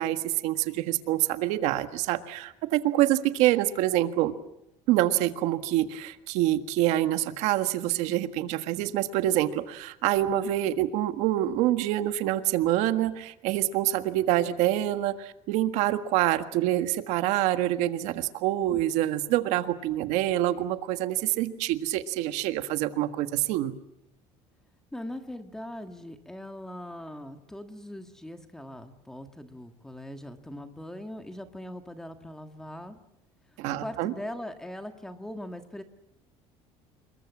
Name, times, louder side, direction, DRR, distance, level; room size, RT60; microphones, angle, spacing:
voice 1, 0.0-4.3 4.9-23.7 33.6-34.1, right 14 dB, 70° right, 10 dB, 1.6 m, -26 dB
voice 2, 24.9-33.0 33.5-35.8, left 1 dB, 5° left, 7 dB, 1.6 m, -40 dB
27.5 x 22.5 x 7.4 m, 0.84 s
cardioid pair, 170°, 12 cm